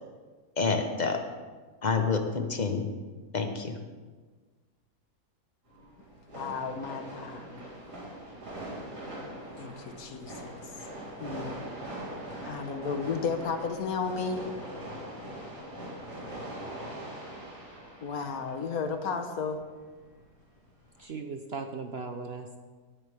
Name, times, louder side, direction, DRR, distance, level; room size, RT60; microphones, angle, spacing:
voice 1, 0.6-1.2 1.8-2.9 3.3-3.8, left 4 dB, 35° left, 5 dB, 0.9 m, -28 dB
sound 1, 5.6-21.0, right 1 dB, 90° right, 4.4 m, -42 dB
voice 2, 6.3-7.7 8.2-8.4 8.7-9.3 9.5-10.9 11.2-14.4 18.0-19.6, left 5 dB, 70° left, 6 dB, 1.5 m, -34 dB
voice 3, 21.0-22.6, right 4 dB, 50° right, 5 dB, 0.8 m, -38 dB
17.5 x 10.5 x 3.5 m, 1.4 s
omnidirectional pair, 1.7 m